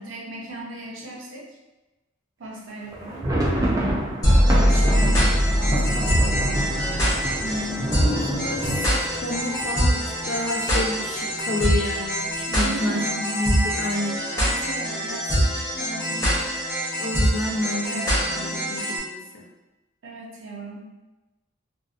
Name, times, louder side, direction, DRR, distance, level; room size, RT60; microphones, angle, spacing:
voice 1, 0.0-1.5 2.4-3.3 4.5-6.7 12.5-13.2 14.4-16.5 17.5-18.6 20.0-21.1, right 2 dB, 70° right, -3 dB, 0.6 m, -37 dB
sound 1, 2.9-10.6 10.9-11.0 11.3-11.5 12.1-12.5, right 1 dB, 15° right, 0.4 m, -28 dB
sound 2, 4.2-19.0, equal, 15° left, 0.7 m, -23 dB
voice 2, 7.4-14.2 17.0-19.5, left 1 dB, 60° left, 1 dB, 0.4 m, -30 dB
2.6 x 2.0 x 2.4 m, 1.1 s
head